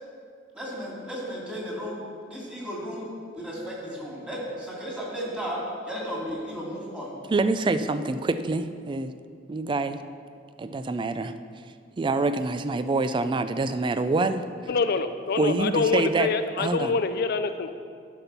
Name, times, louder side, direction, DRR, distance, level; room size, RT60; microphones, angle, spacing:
voice 1, 0.5-2.0 2.3-3.1 3.3-5.6 5.8-7.1, equal, 5° right, -6 dB, 2.7 m, -34 dB
voice 2, 7.3-9.1 9.5-10.0 10.6-11.3 12.0-14.4 15.4-16.3 16.6-17.0, right 3 dB, 25° right, 10 dB, 0.3 m, -26 dB
voice 3, 14.7-17.7, left 4 dB, 55° left, 10 dB, 0.4 m, -26 dB
12.0 x 5.4 x 5.8 m, 2.2 s
head